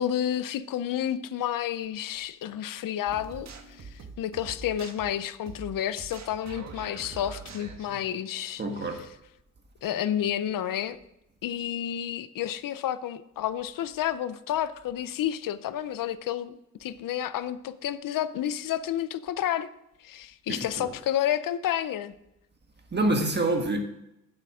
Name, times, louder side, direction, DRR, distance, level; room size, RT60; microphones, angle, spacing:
voice 1, 0.0-9.0 9.8-11.0 11.4-19.7 20.0-22.1, left 11 dB, 90° left, 0.6 m, -30 dB
sound 1, 3.1-8.1, right 5 dB, 55° right, 1.4 m, -44 dB
voice 2, 8.6-9.0 20.5-20.9 22.9-23.8, right 2 dB, 35° right, 1.6 m, -26 dB
9.3 x 7.8 x 4.9 m
wide cardioid pair, 125°, 32 cm